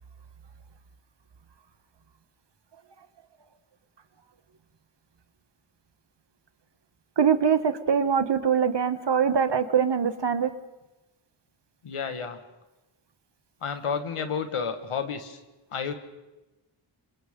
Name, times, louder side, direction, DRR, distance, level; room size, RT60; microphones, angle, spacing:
voice 1, 7.2-10.5, right 7 dB, 55° right, 11 dB, 1.3 m, -23 dB
voice 2, 11.8-12.4 13.6-15.4 15.7-15.9, left 6 dB, 85° left, 7 dB, 1.8 m, -31 dB
28.5 x 26.0 x 3.8 m, 1.0 s
wide cardioid pair, 110°, 50 cm